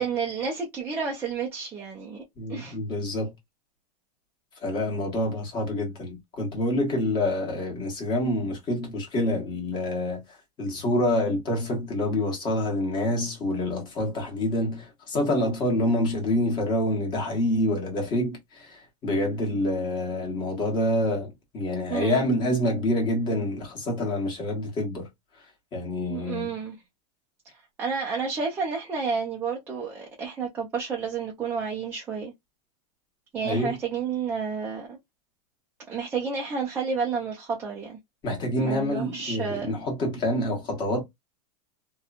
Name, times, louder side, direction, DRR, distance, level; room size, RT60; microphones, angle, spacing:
voice 1, 0.0-2.2 2.5-2.8 21.9-22.3 26.1-26.8 27.8-32.3 33.3-35.0 35.9-38.0 38.6-39.7, right 5 dB, 10° right, 0.4 m, -30 dB
voice 2, 2.4-3.3 4.6-10.2 10.6-25.1 25.7-26.5 33.4-33.7 38.2-41.0, left 1 dB, 20° left, 1.1 m, -27 dB
2.9 x 2.2 x 2.3 m
supercardioid pair, 165°, 20 cm